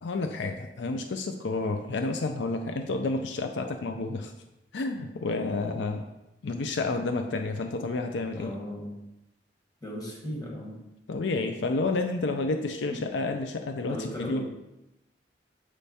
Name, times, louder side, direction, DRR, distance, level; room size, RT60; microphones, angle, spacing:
voice 1, 0.0-4.3 4.7-6.1 6.4-8.5 11.1-14.5, left 3 dB, 80° left, 5 dB, 0.5 m, -30 dB
voice 2, 8.3-9.0 9.8-10.8 12.8-13.0 13.9-14.5, equal, 20° left, -2 dB, 1.5 m, -37 dB
7.5 x 3.4 x 4.2 m, 0.92 s
head